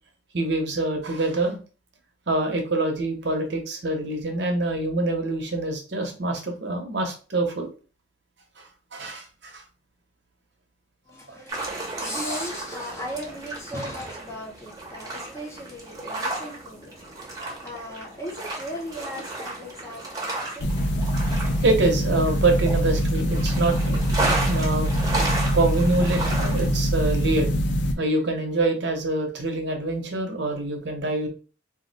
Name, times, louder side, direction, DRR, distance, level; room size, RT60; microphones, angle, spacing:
voice 1, 0.3-1.6 2.3-7.7 8.6-9.6 11.3-11.4 21.6-24.0 24.4-24.9 25.5-27.6 28.0-31.3, right 2 dB, 65° right, 0.8 m, -25 dB
voice 2, 11.1-21.1, equal, 15° left, 0.6 m, -37 dB
sound 1, 11.5-26.8, right 2 dB, 20° right, 0.8 m, -33 dB
sound 2, 20.6-27.9, equal, 65° left, 0.4 m, -24 dB
2.6 x 2.1 x 4.0 m
head